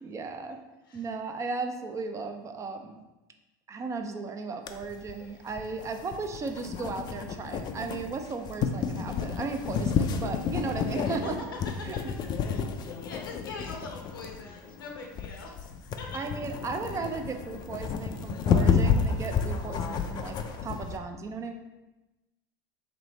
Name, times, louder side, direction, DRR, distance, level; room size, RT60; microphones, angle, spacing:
voice 1, 0.0-0.6 0.9-3.0 3.7-11.4 11.9-12.0 16.1-21.5, right 4 dB, 25° right, 5 dB, 0.5 m, -35 dB
sound 1, 4.7-21.0, left 6 dB, 40° left, 0.4 m, -30 dB
voice 2, 11.8-12.1 12.4-15.6 16.0-16.2, left 4 dB, 90° left, 1 dB, 0.8 m, -43 dB
3.1 x 3.0 x 4.1 m, 1.0 s
hypercardioid pair, 85°, 11 cm